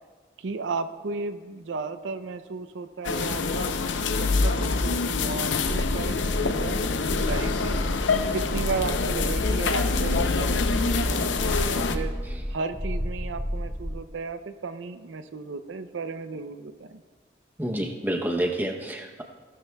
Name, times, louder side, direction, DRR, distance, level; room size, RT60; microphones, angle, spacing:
voice 1, 0.4-7.8 8.3-12.1 12.5-17.0, right 4 dB, 90° right, 10 dB, 0.5 m, -34 dB
sound 1, 3.0-12.0, left 4 dB, 90° left, 0.6 m, -26 dB
sound 2, 5.6-14.0, equal, 35° left, 2.0 m, -31 dB
voice 2, 17.6-19.2, right 1 dB, 10° right, 2 dB, 0.7 m, -28 dB
16.5 x 12.0 x 2.2 m, 1.5 s
head